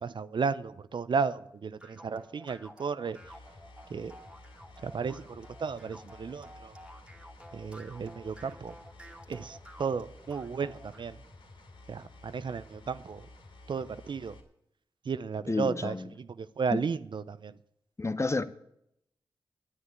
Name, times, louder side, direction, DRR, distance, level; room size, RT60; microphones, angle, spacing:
voice 1, 0.0-3.2 3.9-4.1 4.8-6.7 7.5-8.7 9.3-11.2 11.9-13.3 13.7-14.3 15.1-17.5, right 5 dB, 65° right, 0.6 m, -34 dB
sound 1, 1.8-11.1, equal, 10° right, 2.3 m, -52 dB
sound 2, 3.1-14.4, left 2 dB, 75° left, 2.8 m, -53 dB
voice 2, 15.5-16.1 16.7-16.8 18.0-18.4, left 3 dB, 30° left, 0.9 m, -30 dB
9.8 x 9.6 x 9.6 m
cardioid pair, 50°, 9 cm